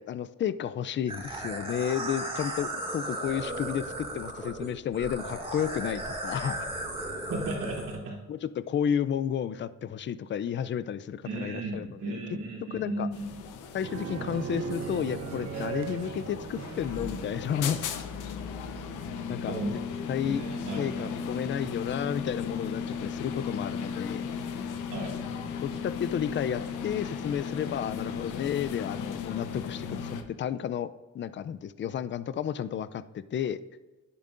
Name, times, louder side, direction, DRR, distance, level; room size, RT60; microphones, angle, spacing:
voice 1, 0.0-6.7 8.3-12.2 12.7-13.1 13.7-17.8 19.3-19.5 20.1-20.4 20.8-24.3 25.6-33.6, left 9 dB, 40° left, 16 dB, 0.5 m, -32 dB
sound 1, 1.1-8.0, right 1 dB, 20° right, 2.1 m, -36 dB
voice 2, 7.3-8.2 11.2-13.5 19.5-21.1 24.9-25.3, right 2 dB, 85° right, -3 dB, 3.1 m, -35 dB
sound 2, 13.1-30.2, left 6 dB, 85° left, 0.9 m, -36 dB
sound 3, 13.8-18.0, right 6 dB, 60° right, 0.9 m, -38 dB
11.0 x 10.5 x 2.6 m, 1.2 s
cardioid pair, 90°, 30 cm